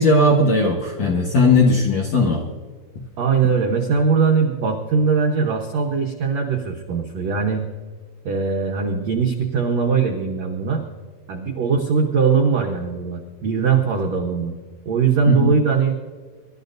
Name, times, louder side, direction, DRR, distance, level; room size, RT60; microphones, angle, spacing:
voice 1, 0.0-2.4 15.3-15.5, left 2 dB, 65° left, -1 dB, 1.7 m, -17 dB
voice 2, 3.2-7.6 8.2-10.8 11.3-14.5 14.8-16.0, right 5 dB, 80° right, 1 dB, 1.5 m, -20 dB
26.5 x 12.5 x 2.6 m, 1.5 s
omnidirectional pair, 4.7 m